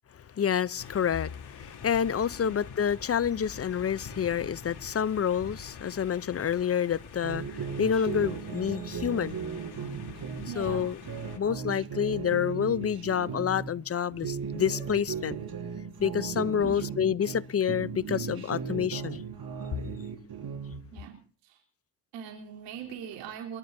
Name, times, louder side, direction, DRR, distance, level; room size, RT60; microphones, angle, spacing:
voice 1, 0.4-9.4 10.5-11.0 11.4-15.4 16.0-19.2, left 8 dB, 35° left, 0.6 m, -28 dB
sound 1, 0.8-11.4, left 6 dB, 60° left, 3.4 m, -46 dB
sound 2, 7.2-13.7 14.1-17.4 17.7-20.8, right 6 dB, 55° right, 5.0 m, -36 dB
voice 2, 10.5-10.9 16.5-17.0 20.9-21.2 21.4-21.6 22.1-23.6, right 8 dB, 90° right, 3.7 m, -41 dB
28.5 x 12.5 x 2.7 m
supercardioid pair, 70°, 43 cm